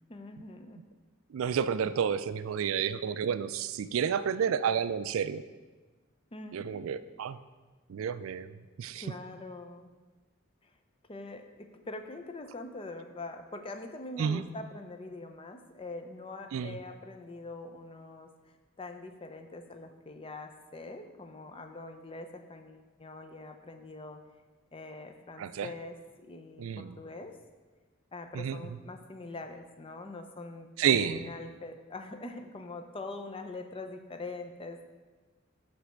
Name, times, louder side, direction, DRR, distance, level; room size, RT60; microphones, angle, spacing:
voice 1, 0.1-0.8 6.3-6.8 9.0-9.9 11.1-18.3 18.8-24.2 24.7-27.3 28.1-34.9, left 2 dB, 25° left, 6 dB, 0.5 m, -43 dB
voice 2, 1.3-5.4 6.5-7.4 7.9-8.5 8.8-9.0 14.2-14.5 16.5-16.8 25.4-25.7 26.6-27.0 28.3-28.6 30.8-31.2, right 7 dB, 80° right, 14 dB, 0.3 m, -30 dB
8.1 x 3.4 x 6.3 m, 1.3 s
head